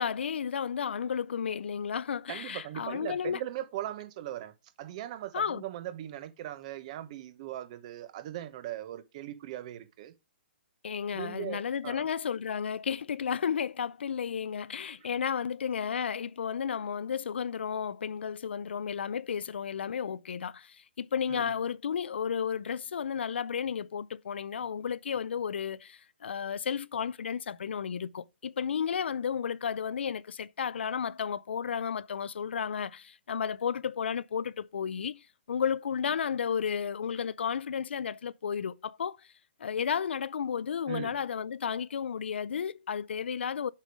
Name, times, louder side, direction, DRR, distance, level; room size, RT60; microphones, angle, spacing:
voice 1, 0.0-3.4 5.3-5.6 10.8-39.2 39.6-43.7, left 7 dB, 80° left, 0.5 m, -33 dB
voice 2, 2.3-4.5 4.8-10.1 11.1-12.0 21.3-21.5 40.9-41.2, right 13 dB, 35° right, 1.1 m, -39 dB
7.4 x 5.3 x 4.8 m
hypercardioid pair, 160°, 6 cm